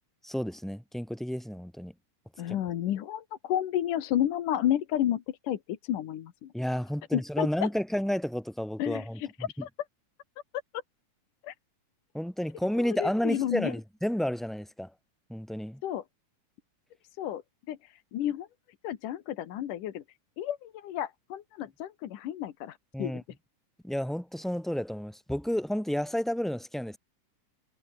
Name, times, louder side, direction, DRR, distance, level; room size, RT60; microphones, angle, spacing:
voice 1, 0.2-1.9 2.5-2.6 6.5-9.5 12.1-14.9 15.3-15.8 22.9-23.2 23.8-27.0, equal, ahead, 2.5 m, -31 dB
voice 2, 2.4-6.5 7.1-7.7 8.8-9.3 9.6-9.7 11.4-11.5 13.0-13.7 15.8-16.0 17.2-17.4 17.7-17.8 18.1-18.5 18.8-20.0 20.4-23.2, left 11 dB, 80° left, 3.0 m, -31 dB
omnidirectional pair, 3.7 m